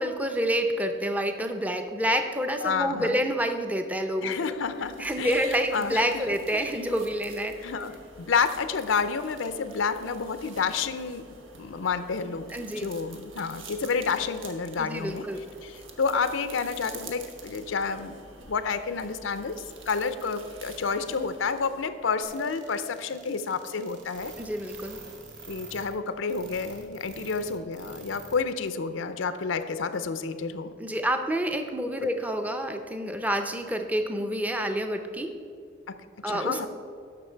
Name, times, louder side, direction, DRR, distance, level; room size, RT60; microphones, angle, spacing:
voice 1, 0.0-4.5 5.0-7.5 12.5-12.9 14.8-15.4 24.4-25.0 30.8-35.3 36.2-36.7, equal, 10° right, 6 dB, 0.5 m, -28 dB
voice 2, 2.6-3.2 4.2-6.1 6.5-7.1 7.6-12.5 12.8-15.3 15.6-18.2 18.5-24.3 25.5-30.7 32.0-32.1 35.9-36.7, left 5 dB, 90° left, 11 dB, 0.5 m, -30 dB
sound 1, 4.5-22.3, right 3 dB, 90° right, 1.1 m, -48 dB
sound 2, 22.2-28.4 28.6-28.7 29.2-29.3, right 4 dB, 65° right, 1.8 m, -46 dB
13.0 x 5.6 x 4.5 m, 2.4 s
head